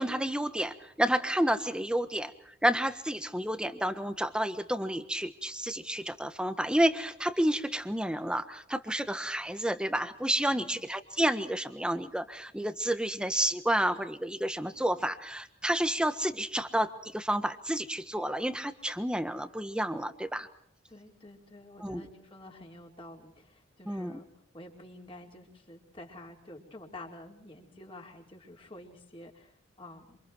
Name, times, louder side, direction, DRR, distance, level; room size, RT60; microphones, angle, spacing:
voice 1, 0.0-20.5 21.8-22.0 23.9-24.2, right 1 dB, 5° right, 9 dB, 1.4 m, -30 dB
voice 2, 10.5-10.8 20.9-24.3 24.5-30.2, left 1 dB, 30° left, 0 dB, 4.8 m, -49 dB
28.0 x 27.5 x 4.7 m, 0.65 s
head